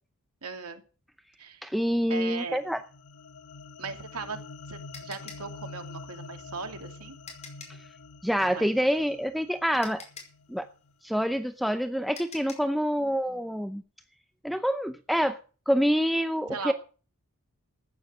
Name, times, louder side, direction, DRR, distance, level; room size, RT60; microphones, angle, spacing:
voice 1, 0.4-0.8 1.4-1.7 2.1-2.6 3.8-4.4 4.7-7.2 8.4-8.8 16.5-16.7, right 4 dB, 85° right, 6 dB, 2.6 m, -38 dB
voice 2, 1.6-2.8 8.2-10.0 10.5-10.7 11.0-13.8 14.4-15.4 15.7-16.7, equal, ahead, 8 dB, 0.7 m, -26 dB
sound 1, 2.5-10.9, left 3 dB, 85° left, 1.0 m, -46 dB
sound 2, 4.0-7.9 9.3-9.4 9.8-12.8, left 4 dB, 30° left, 5.0 m, -47 dB
14.5 x 9.6 x 6.6 m, 0.37 s
head